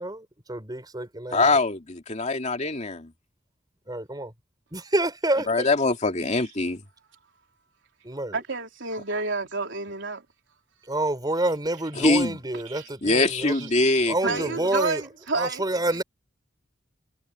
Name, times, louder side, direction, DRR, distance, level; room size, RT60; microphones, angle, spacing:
voice 1, 0.0-1.5 3.9-4.3 4.7-5.5 8.0-8.4 10.9-13.7 14.1-15.0 15.3-16.0, right 1 dB, 20° right, 4.8 m, -28 dB
voice 2, 1.3-3.1 5.5-6.8 12.0-12.4 13.0-14.5, left 2 dB, 35° left, 2.6 m, -23 dB
voice 3, 8.3-10.2 12.5-12.9 13.5-13.7 14.2-16.0, right 3 dB, 65° right, 4.2 m, -30 dB
head